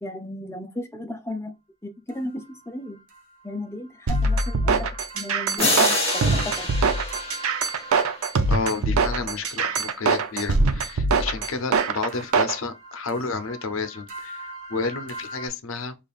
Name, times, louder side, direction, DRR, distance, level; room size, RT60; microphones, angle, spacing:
voice 1, 0.0-1.5 1.8-3.0 3.4-4.9 5.1-6.7, left 1 dB, 10° left, 0.5 m, -34 dB
sound 1, 2.1-8.5 10.1-15.5, right 1 dB, 40° right, 0.9 m, -42 dB
sound 2, 4.1-12.6, right 4 dB, 85° right, 0.5 m, -23 dB
sound 3, 5.6-8.3, left 2 dB, 30° left, 1.7 m, -26 dB
voice 2, 8.5-16.0, left 4 dB, 70° left, 0.5 m, -30 dB
5.1 x 2.4 x 2.3 m
head